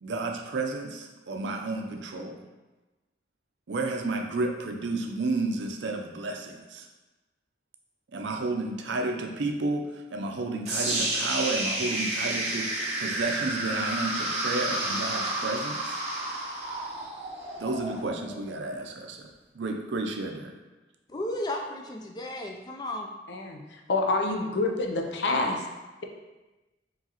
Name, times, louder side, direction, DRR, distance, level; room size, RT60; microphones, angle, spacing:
voice 1, 0.0-2.4 3.7-6.9 8.1-16.0 17.6-19.3 19.5-20.5, right 2 dB, 75° right, 3 dB, 0.5 m, -31 dB
sound 1, 10.6-18.7, right 1 dB, 40° right, 0.7 m, -31 dB
voice 2, 21.1-23.1, left 1 dB, 20° left, 2 dB, 0.4 m, -34 dB
voice 3, 23.3-25.6, left 2 dB, 70° left, 2 dB, 0.5 m, -27 dB
4.6 x 3.1 x 2.9 m, 1.1 s
head